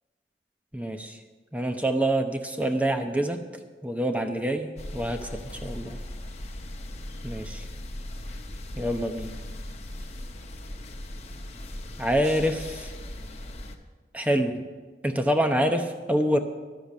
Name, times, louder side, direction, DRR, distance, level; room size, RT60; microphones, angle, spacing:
voice 1, 0.7-1.2 1.5-3.4 3.8-6.0 7.2-7.6 8.8-9.4 12.0-12.9 14.1-14.6 15.0-16.4, right 1 dB, 10° right, 5 dB, 0.8 m, -26 dB
sound 1, 4.8-13.8, left 1 dB, 40° left, 1.0 m, -38 dB
12.0 x 7.1 x 8.3 m, 1.4 s
head